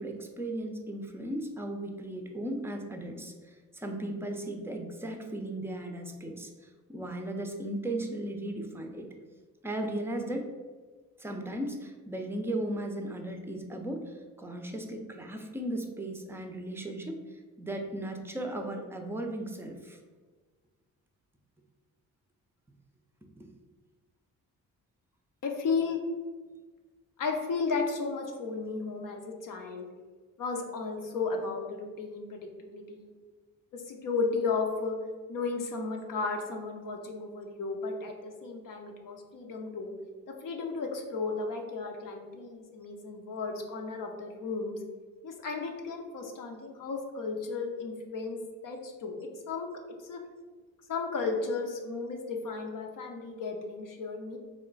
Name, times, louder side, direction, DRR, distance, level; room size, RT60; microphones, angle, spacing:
voice 1, 0.0-6.5 6.9-9.1 9.6-10.5 11.2-20.0 23.4-23.5, right 1 dB, 5° right, 3 dB, 0.5 m, -36 dB
voice 2, 25.4-26.0 27.2-29.9 30.4-33.1 33.7-34.9 35.3-39.9 40.3-44.8 45.2-48.4 48.6-49.2 49.5-49.7 50.0-50.2 50.9-54.4, left 4 dB, 60° left, 2 dB, 0.7 m, -34 dB
3.1 x 2.1 x 3.8 m, 1.4 s
supercardioid pair, 55°, 37 cm